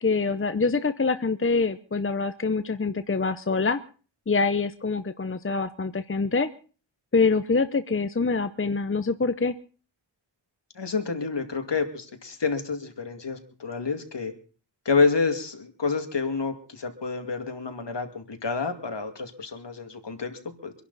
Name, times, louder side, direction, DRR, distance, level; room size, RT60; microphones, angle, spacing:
voice 1, 0.0-3.8 4.3-6.5 7.1-9.6, left 4 dB, 25° left, 10 dB, 0.8 m, -25 dB
voice 2, 10.8-14.3 14.9-20.7, left 4 dB, 60° left, 6 dB, 2.4 m, -28 dB
25.0 x 11.0 x 4.1 m, 0.39 s
wide cardioid pair, 65°, 47 cm